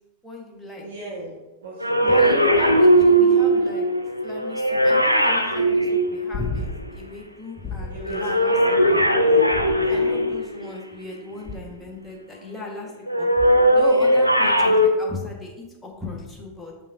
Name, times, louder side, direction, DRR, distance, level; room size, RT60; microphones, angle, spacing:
voice 1, 0.2-0.8 2.0-3.8 4.2-9.1 9.9-13.3 13.7-16.7, left 2 dB, 5° left, -2 dB, 1.3 m, -36 dB
voice 2, 0.8-2.1 7.9-8.4 9.3-9.4 9.7-10.1, right 2 dB, 65° right, -6 dB, 1.4 m, -37 dB
sound 1, 1.8-6.8 8.1-10.6 13.1-14.9, right 1 dB, 90° right, 0.4 m, -18 dB
sound 2, 6.3-7.0 7.6-8.2 9.5-10.2 11.4-11.9 13.4-13.8 16.2-16.3, left 3 dB, 30° left, 0.5 m, -33 dB
6.7 x 5.5 x 2.6 m, 1.1 s
figure-of-eight pair, 90°, 0 cm